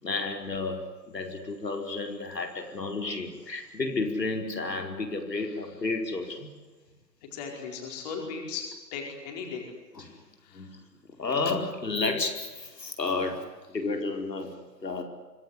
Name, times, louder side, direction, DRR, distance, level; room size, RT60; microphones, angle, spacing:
voice 1, 0.0-6.5 10.1-10.2 10.5-10.7 11.2-13.4 13.7-14.5 14.8-15.0, left 3 dB, 75° left, 4 dB, 4.8 m, -31 dB
voice 2, 5.3-5.8 7.2-9.7 10.4-10.8, left 5 dB, 25° left, 2 dB, 4.9 m, -38 dB
25.5 x 18.0 x 9.9 m, 1.2 s
figure-of-eight pair, 150°, 50 cm